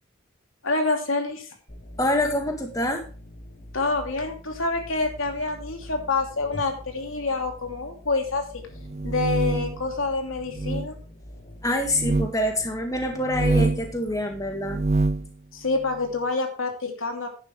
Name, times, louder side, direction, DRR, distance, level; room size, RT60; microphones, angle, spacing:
voice 1, 0.6-1.5 3.7-8.6 9.0-11.0 15.5-17.3, left 3 dB, 75° left, 3 dB, 2.8 m, -27 dB
sound 1, 1.7-15.2, left 1 dB, 45° left, 5.0 m, -45 dB
voice 2, 2.0-3.0 11.6-14.8, left 1 dB, 15° left, 4 dB, 1.8 m, -26 dB
sound 2, 8.8-9.8 10.5-10.9 11.9-12.3 13.2-13.9 14.6-15.3, right 2 dB, 30° right, 0.4 m, -25 dB
11.0 x 10.5 x 3.2 m, 0.37 s
head